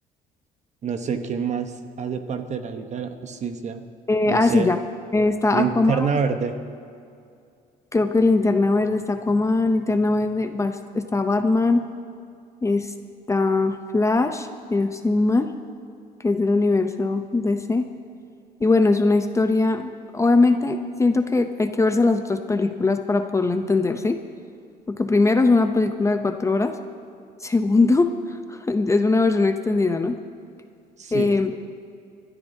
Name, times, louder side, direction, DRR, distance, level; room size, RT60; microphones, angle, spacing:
voice 1, 0.8-3.8 4.3-4.7 5.5-6.5 31.0-31.4, right 6 dB, 45° right, 7 dB, 1.1 m, -27 dB
voice 2, 4.1-4.8 5.1-6.1 7.9-11.8 12.6-12.9 13.3-15.5 16.2-17.9 18.6-24.2 24.9-26.7 27.4-30.2 31.1-31.5, left 3 dB, 15° left, 7 dB, 0.6 m, -21 dB
26.0 x 12.5 x 2.8 m, 2.4 s
cardioid pair, 110°, 17 cm